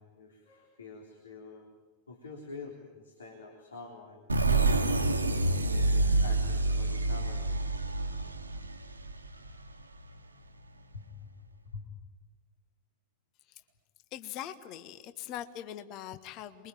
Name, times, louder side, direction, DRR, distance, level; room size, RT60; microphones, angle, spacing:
voice 1, 0.0-1.7 2.1-5.1 5.7-7.5 10.9-11.3 11.7-11.9, left 3 dB, 70° left, 1 dB, 3.6 m, -47 dB
sound 1, 4.3-9.8, right 2 dB, 80° right, 1.6 m, -28 dB
voice 2, 14.1-16.7, left 11 dB, 40° left, 11 dB, 1.5 m, -41 dB
28.0 x 22.5 x 9.2 m, 1.2 s
figure-of-eight pair, 90°, 0 cm